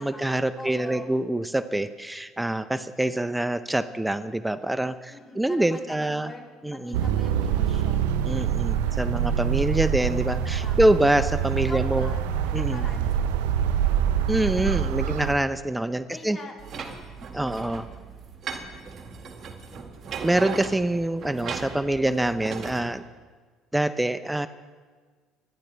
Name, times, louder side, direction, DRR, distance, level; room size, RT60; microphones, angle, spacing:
voice 1, 0.0-6.3 6.6-7.0 8.2-12.1 12.5-12.9 14.3-16.4 17.3-17.9 20.2-23.0 23.7-24.5, right 1 dB, 10° right, 12 dB, 0.6 m, -25 dB
voice 2, 0.6-1.1 5.1-8.2 10.1-11.0 11.7-13.8 16.1-16.5 17.2-17.5 21.9-22.2, left 2 dB, 20° left, -2 dB, 3.9 m, -44 dB
sound 1, 6.9-15.3, right 9 dB, 85° right, 0.7 m, -25 dB
sound 2, 16.6-22.8, right 5 dB, 50° right, 2.1 m, -37 dB
30.0 x 10.5 x 3.4 m, 1.5 s
hypercardioid pair, 70°, 0 cm